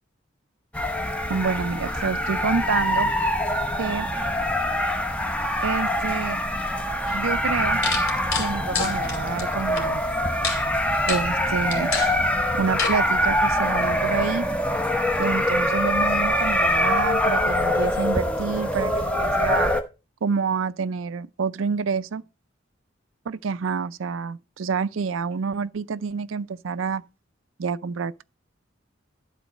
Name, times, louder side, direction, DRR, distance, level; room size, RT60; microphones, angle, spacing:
sound 1, 0.7-19.8, left 1 dB, 5° left, 0.9 m, -24 dB
voice 1, 1.3-3.1 3.8-4.1 5.6-6.4 7.1-7.8 8.4-10.0 11.1-11.9 12.6-14.5 15.2-19.7 20.2-22.2 23.3-27.0 27.6-28.2, right 5 dB, 90° right, 0.5 m, -28 dB
sound 2, 7.1-7.2 7.8-9.8 10.4-10.6 11.1-11.3 11.7-12.1 12.8-13.0, left 5 dB, 85° left, 2.8 m, -27 dB
11.5 x 4.0 x 6.3 m
head